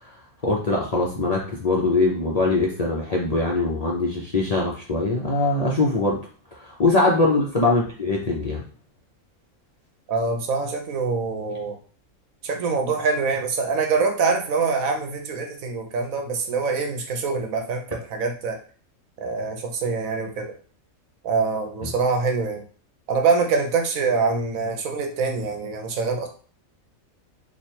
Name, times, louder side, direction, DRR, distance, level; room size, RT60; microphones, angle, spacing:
voice 1, 0.4-6.2 6.6-8.6 21.8-21.9, left 2 dB, 40° left, -3 dB, 0.5 m, -22 dB
voice 2, 10.1-11.8 12.4-18.6 19.2-20.5 21.2-22.6 23.1-26.3, right 4 dB, 80° right, 4 dB, 1.2 m, -24 dB
3.3 x 2.5 x 4.3 m, 0.42 s
omnidirectional pair, 1.4 m